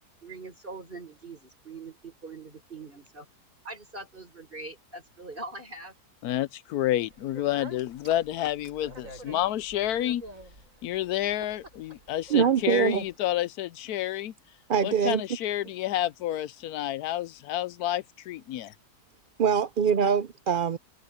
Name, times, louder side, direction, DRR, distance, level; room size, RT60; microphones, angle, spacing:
voice 1, 0.0-3.3 3.6-5.9, right 3 dB, 30° right, 5.8 m, -42 dB
voice 2, 6.2-10.2 10.8-14.3 14.8-18.7, left 13 dB, 75° left, 1.1 m, -29 dB
Speech, 7.1-13.1, right 1 dB, 55° right, 8.4 m, -48 dB
voice 3, 12.3-13.0 14.7-15.2 19.4-20.8, right 7 dB, 75° right, 0.4 m, -23 dB
omnidirectional pair, 1.7 m